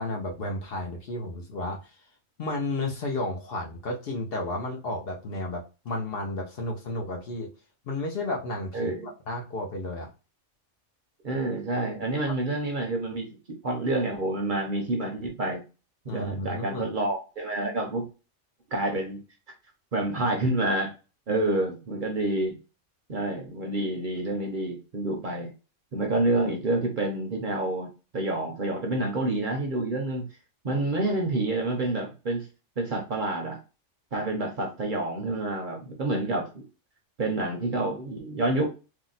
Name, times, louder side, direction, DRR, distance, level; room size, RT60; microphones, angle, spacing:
voice 1, 0.0-1.9 2.4-7.5 7.9-10.1 16.1-16.8, left 2 dB, 60° left, 1 dB, 0.7 m, -32 dB
voice 2, 8.7-9.1 11.2-13.3 13.6-15.6 16.0-18.0 18.7-19.2 19.9-20.9 21.3-22.6 23.1-25.5 25.9-30.2 30.6-32.5 32.8-33.6 34.1-36.6 37.2-38.7, right 2 dB, 50° right, 2 dB, 0.8 m, -28 dB
2.8 x 2.0 x 3.9 m, 0.31 s
omnidirectional pair, 1.3 m